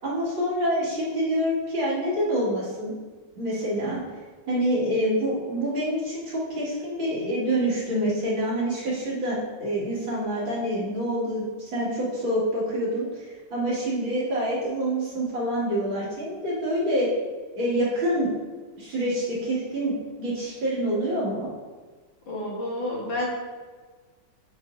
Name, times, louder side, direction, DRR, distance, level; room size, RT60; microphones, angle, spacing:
voice 1, 0.0-2.9 3.4-4.0 4.5-11.4 11.7-17.1 17.6-18.3 18.8-19.9 20.2-21.5, equal, 65° right, -7 dB, 3.0 m, -26 dB
voice 2, 22.3-23.3, left 1 dB, 70° left, -3 dB, 2.2 m, -29 dB
7.8 x 7.4 x 2.7 m, 1.4 s
omnidirectional pair, 2.3 m